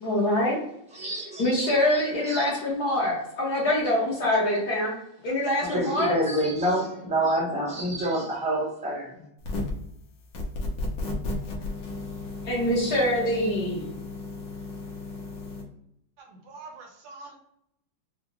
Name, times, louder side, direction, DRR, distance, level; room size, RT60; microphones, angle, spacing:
voice 1, 0.0-0.6 1.4-4.9 5.2-6.1 12.4-13.9, left 1 dB, 60° left, -4 dB, 1.4 m, -24 dB
voice 2, 0.9-1.5 1.9-2.5 5.6-9.1, right 1 dB, 5° right, -4 dB, 0.5 m, -27 dB
sound 1, 9.4-9.9 10.3-15.6, left 2 dB, 85° left, 1.6 m, -34 dB
voice 3, 16.2-17.4, right 3 dB, 65° right, 2 dB, 1.2 m, -45 dB
4.8 x 2.0 x 2.9 m, 0.79 s
omnidirectional pair, 2.1 m